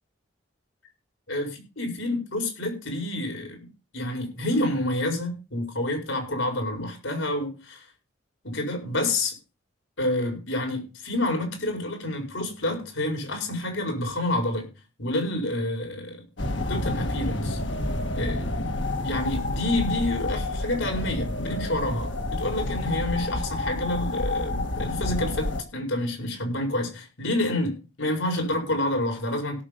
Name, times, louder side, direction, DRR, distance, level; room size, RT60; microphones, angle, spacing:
voice 1, 1.3-3.7 3.9-7.8 8.4-9.4 10.0-14.7 15.0-16.2 16.7-17.6 18.1-18.5 19.0-29.6, left 1 dB, 80° left, 5.0 m, -28 dB
sound 1, 16.4-25.6, left 2 dB, 65° left, 1.6 m, -29 dB
17.0 x 7.1 x 5.2 m
head